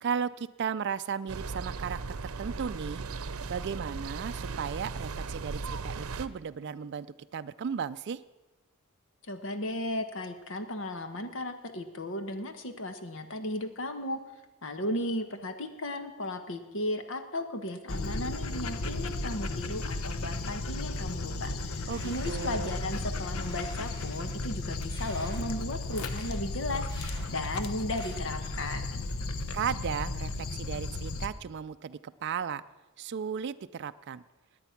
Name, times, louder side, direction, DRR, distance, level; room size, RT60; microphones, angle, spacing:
voice 1, 0.0-3.0 3.5-7.1 7.3-8.2 21.9-22.7 29.5-32.6 33.0-34.2, right 7 dB, 55° right, 11 dB, 0.4 m, -35 dB
sound 1, 1.3-6.3, right 4 dB, 90° right, 0.7 m, -37 dB
voice 2, 9.3-14.2 14.6-29.1, left 1 dB, 65° left, 8 dB, 1.3 m, -35 dB
Dog, 17.9-31.3, left 2 dB, 80° left, 0.9 m, -34 dB
sound 2, 21.9-23.0 23.4-24.4 24.9-25.5 25.9-26.4 26.9-27.3 27.9-28.1, equal, 20° left, 2.3 m, -49 dB
17.5 x 9.9 x 5.8 m, 1.2 s
head